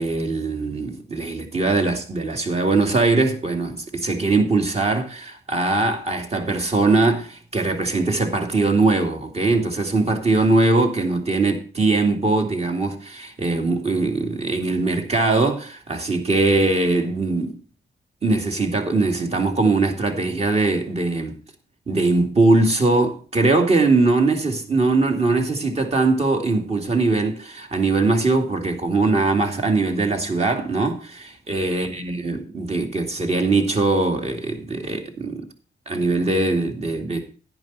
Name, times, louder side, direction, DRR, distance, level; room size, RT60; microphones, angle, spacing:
voice 1, 0.0-17.5 18.2-21.4 21.9-35.4 35.9-37.3, right 3 dB, 35° right, 2.5 m, -21 dB
10.5 x 10.5 x 4.1 m
cardioid pair, 115°, 18 cm